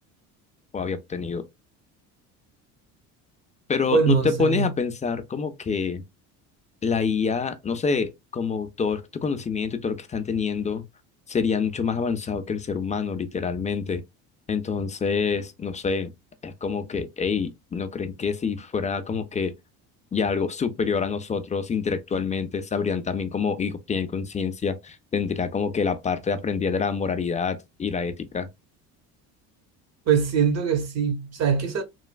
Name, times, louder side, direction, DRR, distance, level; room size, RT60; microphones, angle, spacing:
voice 1, 0.7-1.5 3.7-6.0 6.8-10.8 11.3-14.0 14.5-16.1 16.4-19.5 20.1-28.5, left 5 dB, 20° left, 0.4 m, -27 dB
voice 2, 3.9-4.7 30.1-31.8, right 7 dB, 40° right, 0.8 m, -22 dB
3.1 x 2.3 x 2.2 m
supercardioid pair, 85°, 41 cm